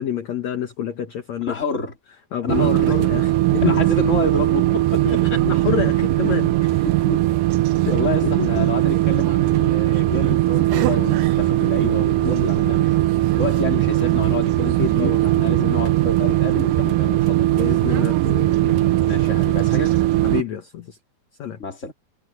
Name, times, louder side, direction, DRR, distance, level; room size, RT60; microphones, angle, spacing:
voice 1, 0.0-1.8 2.3-3.9 5.1-6.9 7.9-8.7 12.2-12.5 14.8-15.3 17.4-19.1 20.2-21.0 21.4-21.6, left 9 dB, 55° left, 2.2 m, -28 dB
voice 2, 1.4-1.9 2.4-3.0 3.6-5.2 5.5-5.6 6.8-7.3 7.8-13.0 13.4-17.5 19.1-20.1 21.6-21.9, left 3 dB, 20° left, 3.2 m, -29 dB
sound 1, 2.5-20.4, right 16 dB, 85° right, 1.9 m, -19 dB
omnidirectional pair, 4.7 m